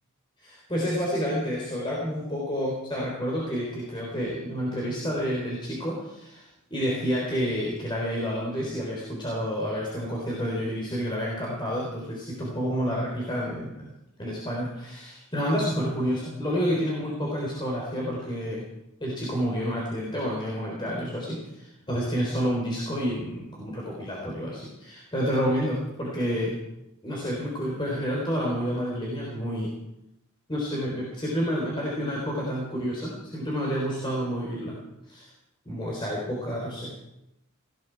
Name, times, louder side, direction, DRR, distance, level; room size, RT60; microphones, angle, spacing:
voice 1, 0.4-13.9 14.2-18.6 19.0-26.6 27.0-29.7 30.5-34.8 35.1-35.3 35.7-36.9, equal, 20° left, -3 dB, 3.7 m, -29 dB
19.5 x 15.5 x 4.6 m, 0.87 s
head